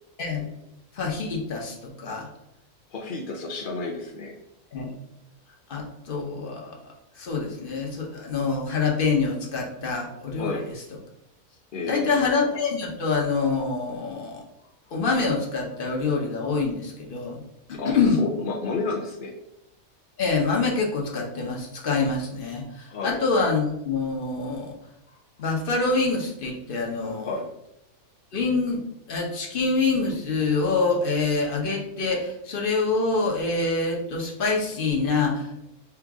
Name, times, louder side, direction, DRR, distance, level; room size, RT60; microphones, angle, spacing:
voice 1, 0.2-0.5 0.9-2.3 4.7-4.9 5.7-10.6 11.9-14.4 14.9-17.4 17.7-18.2 20.2-24.7 25.4-27.4 28.3-35.7, left 4 dB, 45° left, 0 dB, 1.0 m, -26 dB
voice 2, 2.9-4.4 10.4-10.7 11.7-12.2 17.7-19.3 22.9-23.2 27.2-27.4, left 3 dB, 60° left, 0 dB, 0.5 m, -31 dB
5.8 x 2.5 x 3.5 m, 0.84 s
omnidirectional pair, 1.5 m